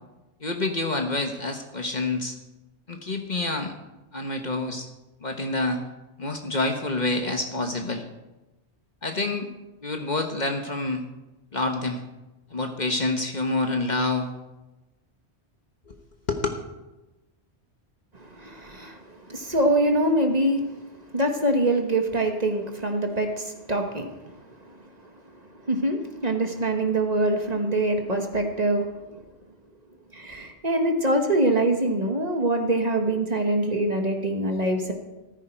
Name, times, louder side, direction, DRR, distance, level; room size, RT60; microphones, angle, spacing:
voice 1, 0.4-2.4 2.9-3.7 4.1-4.9 5.2-5.8 6.2-8.0 9.0-9.5 9.8-11.0 11.5-12.0 12.5-14.3 15.9-16.0 16.3-16.6, left 2 dB, 40° left, 4 dB, 1.3 m, -27 dB
voice 2, 18.1-20.7 21.1-24.4 24.6-24.8 25.7-28.9 30.1-34.9, right 1 dB, 35° right, 4 dB, 1.6 m, -24 dB
14.5 x 14.0 x 4.5 m, 1.1 s
omnidirectional pair, 1.1 m